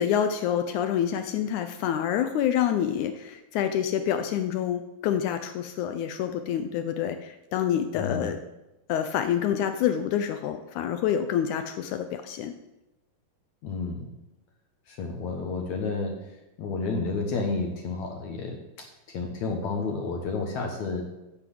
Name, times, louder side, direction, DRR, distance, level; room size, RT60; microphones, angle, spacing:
voice 1, 0.0-8.4 8.9-12.5, left 9 dB, 80° left, 8 dB, 1.7 m, -27 dB
voice 2, 7.9-8.3 13.6-14.1 14.9-16.2 16.6-18.6 19.1-21.0, left 4 dB, 65° left, 3 dB, 2.2 m, -30 dB
10.5 x 6.1 x 7.6 m, 0.96 s
omnidirectional pair, 4.1 m